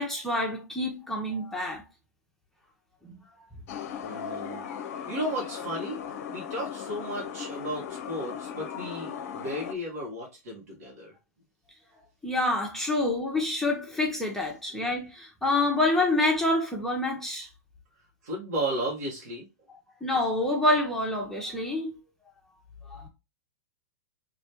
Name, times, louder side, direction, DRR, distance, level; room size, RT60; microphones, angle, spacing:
voice 1, 0.0-1.8 3.0-3.1 12.2-17.5 20.0-22.0 22.9-23.1, left 2 dB, 5° left, 0.8 m, -27 dB
sound 1, 3.7-9.7, left 8 dB, 55° left, 0.6 m, -37 dB
voice 2, 4.0-4.6 5.1-6.0 6.3-11.1 18.2-19.4, right 1 dB, 60° right, 1.5 m, -34 dB
3.3 x 2.9 x 2.9 m
figure-of-eight pair, 100°, 9 cm